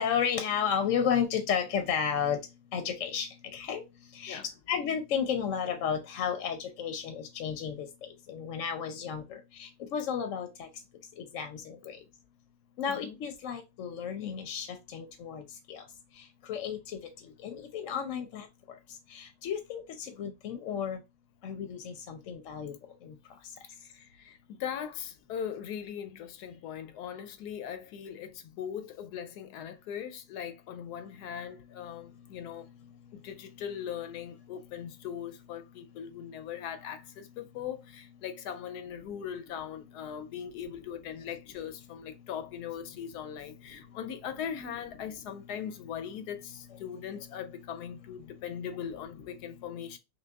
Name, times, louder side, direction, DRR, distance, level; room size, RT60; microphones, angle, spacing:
voice 1, 0.0-2.4 2.7-3.8 4.2-4.4 4.7-7.9 8.3-9.2 9.6-10.7 11.3-12.0 12.8-14.7 14.9-15.4 15.7-15.8 16.5-16.8 17.4-18.5 19.1-21.0 21.4-22.7 23.1-23.2, left 7 dB, 65° left, 0.9 m, -32 dB
voice 2, 12.9-13.2 23.8-32.7 33.1-50.0, left 8 dB, 90° left, 1.2 m, -40 dB
5.8 x 2.2 x 2.3 m
omnidirectional pair, 1.7 m